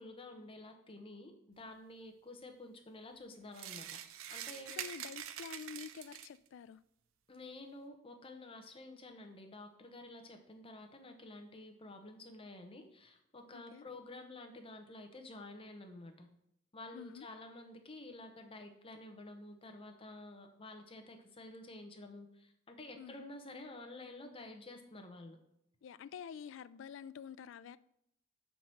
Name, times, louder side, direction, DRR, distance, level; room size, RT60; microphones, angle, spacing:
voice 1, 0.0-4.0 4.3-4.7 7.3-16.3 16.7-25.4, left 2 dB, 25° left, 0.9 m, -50 dB
sound 1, 3.5-6.5, right 10 dB, 85° right, 0.5 m, -45 dB
voice 2, 4.8-6.8 13.5-13.9 16.9-17.3 23.0-23.3 25.8-27.8, left 7 dB, 65° left, 0.3 m, -48 dB
5.8 x 4.7 x 5.6 m
head